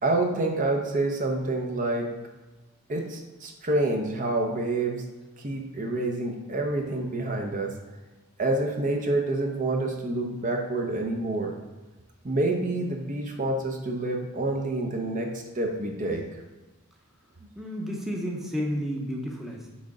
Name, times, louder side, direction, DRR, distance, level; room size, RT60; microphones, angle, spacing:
voice 1, 0.0-2.1 2.9-5.0 5.4-7.7 8.4-11.5 12.2-16.2, right 2 dB, 35° right, 2 dB, 0.6 m, -27 dB
voice 2, 17.6-19.7, equal, ahead, -2 dB, 0.7 m, -31 dB
6.1 x 3.7 x 4.9 m, 1.1 s
head